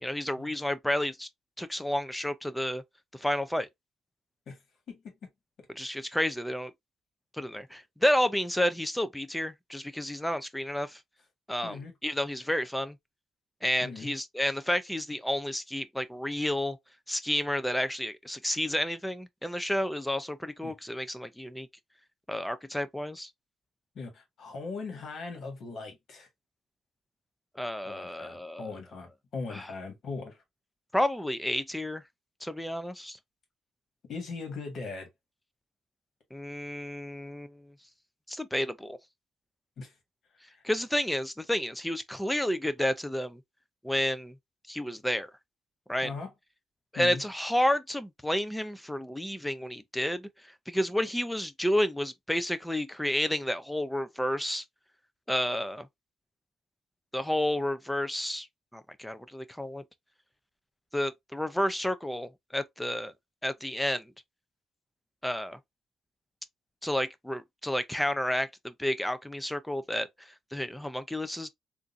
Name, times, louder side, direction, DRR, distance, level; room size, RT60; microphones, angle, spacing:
voice 1, 0.0-1.3 1.6-2.8 3.1-3.7 5.8-6.7 7.3-11.0 11.5-13.0 13.6-16.8 17.1-21.7 22.3-23.3 27.6-28.7 29.5-29.6 30.9-32.0 32.4-33.2 36.3-37.7 38.3-39.0 40.6-43.4 43.8-44.3 44.7-45.3 45.9-46.1 46.9-50.3 50.7-54.6 55.3-55.9 57.1-58.5 58.7-59.8 60.9-63.1 63.4-64.1 65.2-65.6 66.8-71.5, left 1 dB, 5° left, 0.5 m, -30 dB
voice 2, 11.6-11.9 13.8-14.1 20.6-20.7 24.0-26.3 27.8-30.4 34.1-35.1 39.8-39.9 40.4-40.6 46.0-46.3 47.0-47.2, left 4 dB, 60° left, 1.7 m, -39 dB
3.7 x 2.5 x 2.6 m
cardioid pair, 90°, 0 cm